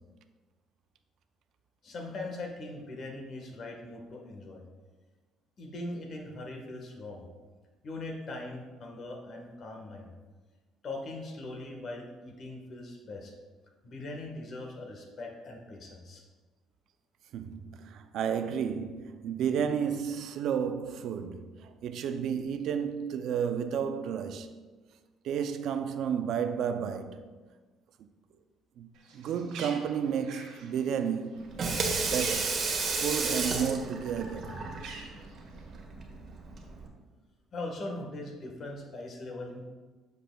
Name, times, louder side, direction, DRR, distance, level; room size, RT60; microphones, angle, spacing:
voice 1, 1.8-4.6 5.6-7.3 7.8-10.1 10.8-13.3 13.8-16.2 37.5-39.6, left 2 dB, 50° left, 1.3 m, -40 dB
voice 2, 17.3-24.6 25.2-27.3 28.8-28.9 29.1-31.7 32.0-34.5, right 7 dB, 65° right, 0.4 m, -32 dB
Bird, 28.9-33.6 33.9-35.8, right 4 dB, 85° right, 1.2 m, -47 dB
Water tap faucet / Sink (filling or washing), 31.4-36.9, right 4 dB, 40° right, 1.1 m, -33 dB
7.7 x 6.7 x 2.3 m
cardioid pair, 115°, 0 cm